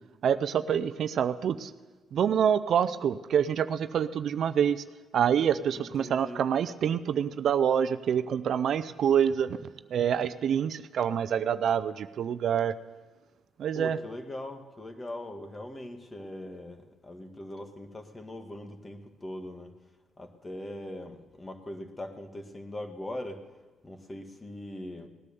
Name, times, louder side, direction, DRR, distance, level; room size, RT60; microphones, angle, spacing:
voice 1, 0.2-1.7 2.1-4.8 5.1-9.6 9.9-12.8 13.6-14.0, right 8 dB, 65° right, 12 dB, 0.6 m, -26 dB
voice 2, 5.7-6.4 13.7-19.7 20.2-23.4 23.8-25.1, left 1 dB, 20° left, 6 dB, 1.7 m, -41 dB
18.5 x 9.9 x 7.0 m, 1.3 s
cardioid pair, 90°, 0 cm